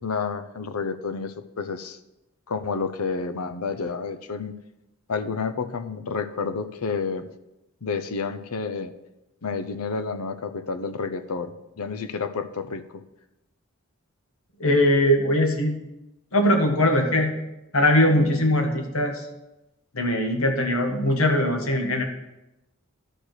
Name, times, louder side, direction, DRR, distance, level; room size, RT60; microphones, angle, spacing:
voice 1, 0.0-2.0 2.5-4.6 5.1-7.3 7.8-8.9 9.4-13.0, left 5 dB, 85° left, 10 dB, 0.7 m, -30 dB
voice 2, 14.6-15.8 16.3-17.3 17.7-19.2 19.9-22.0, left 1 dB, 70° left, 4 dB, 1.5 m, -21 dB
11.5 x 4.5 x 6.6 m, 0.92 s
head